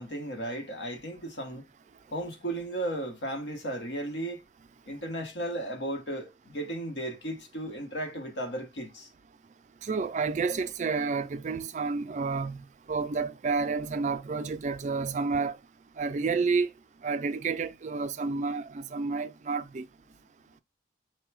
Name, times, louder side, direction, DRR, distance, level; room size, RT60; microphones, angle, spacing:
voice 1, 0.0-1.7 2.1-4.4 4.9-9.1, right 1 dB, 85° left, 1.1 m, -35 dB
voice 2, 9.8-12.6 12.9-15.6 16.0-16.7 17.0-19.8, right 4 dB, 40° right, 0.4 m, -30 dB
4.6 x 2.2 x 4.5 m
head